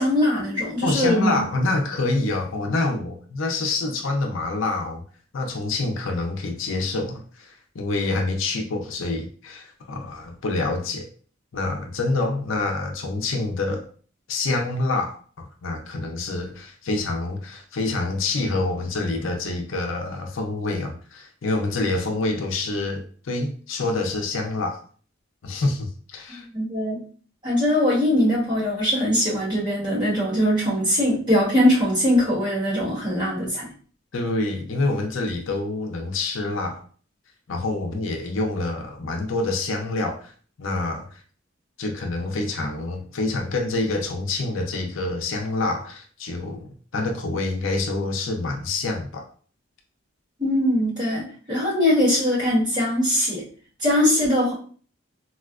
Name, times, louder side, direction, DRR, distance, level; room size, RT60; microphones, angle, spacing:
voice 1, 0.0-1.4 26.3-27.0 27.4-33.7 50.4-53.4 53.8-54.5, left 1 dB, 20° right, -7 dB, 1.3 m, -21 dB
voice 2, 0.8-5.0 5.3-11.1 11.5-13.9 14.3-24.8 25.4-26.5 34.1-36.8 37.5-40.3 40.6-41.1 41.8-49.3, left 2 dB, 75° left, 3 dB, 0.5 m, -27 dB
4.2 x 2.1 x 2.3 m, 0.43 s
head